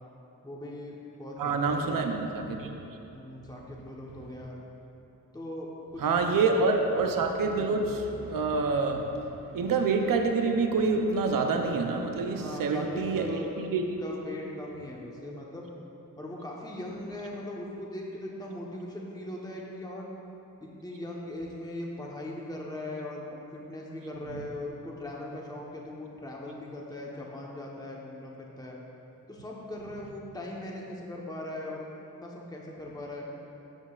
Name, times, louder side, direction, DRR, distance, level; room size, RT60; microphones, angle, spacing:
voice 1, 0.4-2.0 3.1-4.6 5.3-6.6 12.3-13.5 14.0-15.7 16.2-20.1 20.6-23.2 23.5-28.8 29.3-31.9 32.2-33.3, left 1 dB, 10° left, -3 dB, 1.1 m, -39 dB
voice 2, 1.4-2.7 6.0-14.0 24.3-24.5, right 4 dB, 80° right, 4 dB, 0.7 m, -27 dB
12.5 x 7.2 x 2.4 m, 3.0 s
cardioid pair, 60°, 33 cm